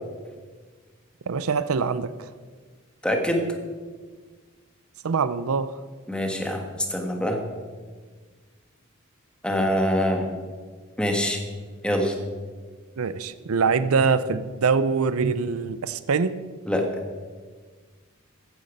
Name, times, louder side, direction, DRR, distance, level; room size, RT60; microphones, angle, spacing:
voice 1, 1.3-2.3 5.0-5.7 13.0-16.4, right 5 dB, 85° right, 14 dB, 0.5 m, -24 dB
voice 2, 3.0-3.4 6.1-6.6 6.9-7.4 9.4-10.2 11.0-11.4 11.8-12.1 16.7-16.8, equal, 5° left, 3 dB, 1.5 m, -24 dB
14.0 x 9.4 x 5.2 m, 1.5 s
head